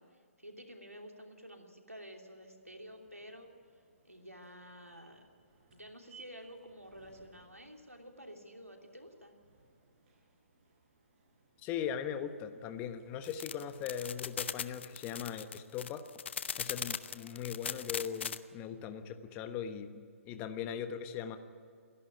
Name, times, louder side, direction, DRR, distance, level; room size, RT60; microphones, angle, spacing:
voice 1, 0.0-3.5 4.0-5.3 5.7-9.3, equal, 90° right, 3 dB, 3.0 m, -51 dB
sound 1, 2.3-15.8, right 4 dB, 35° right, 5.1 m, -65 dB
voice 2, 11.6-16.0 16.6-19.9 20.2-21.4, left 8 dB, 20° left, 9 dB, 1.2 m, -39 dB
sound 2, 13.2-18.4, left 7 dB, 55° left, 0.8 m, -38 dB
28.5 x 11.5 x 9.5 m, 2.4 s
figure-of-eight pair, 130°, 8 cm